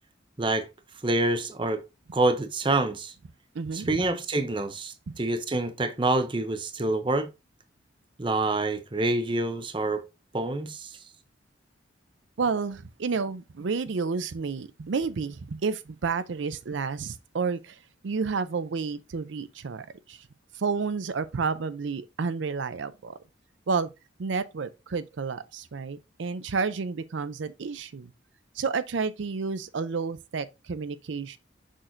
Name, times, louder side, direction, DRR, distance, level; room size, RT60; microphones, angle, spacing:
voice 1, 1.0-1.8 2.1-3.1 3.7-7.3 8.2-10.0 10.3-10.9, right 2 dB, 25° right, 0.6 m, -27 dB
voice 2, 3.5-4.0 5.1-5.2 12.4-20.3 20.5-23.2 23.7-23.9 24.2-28.1 28.5-31.4, right 5 dB, 75° right, 0.5 m, -30 dB
6.3 x 6.0 x 2.6 m
head